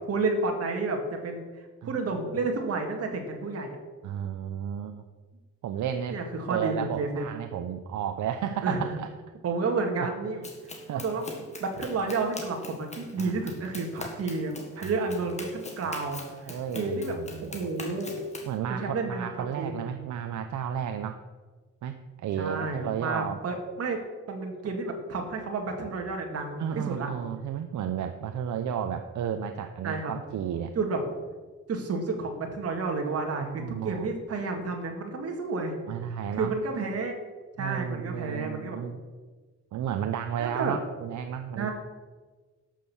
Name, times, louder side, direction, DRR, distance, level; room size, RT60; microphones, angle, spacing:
voice 1, 0.1-1.4 1.8-3.8 6.1-7.2 8.6-9.0 9.4-10.4 10.9-11.2 11.6-17.2 17.5-18.1 18.7-19.7 22.4-24.0 24.3-27.1 29.8-30.1 30.8-31.0 31.7-33.5 33.8-35.8 36.3-37.1 37.6-38.8 40.4-40.8 41.6-41.7, right 3 dB, 55° right, 3 dB, 2.1 m, -31 dB
voice 2, 1.8-2.4 4.0-5.0 5.6-6.2 6.5-9.1 10.0-10.1 10.4-10.5 10.9-11.0 13.2-13.5 14.8-14.9 15.8-15.9 16.5-17.7 18.5-21.2 21.8-23.4 26.6-30.7 33.2-34.1 35.9-36.6 37.6-39.0 39.7-41.7, right 8 dB, 75° right, 7 dB, 0.7 m, -33 dB
Run, 10.4-18.5, left 2 dB, 25° left, 1.6 m, -43 dB
12.0 x 6.5 x 7.1 m, 1.3 s
wide cardioid pair, 180°, 30 cm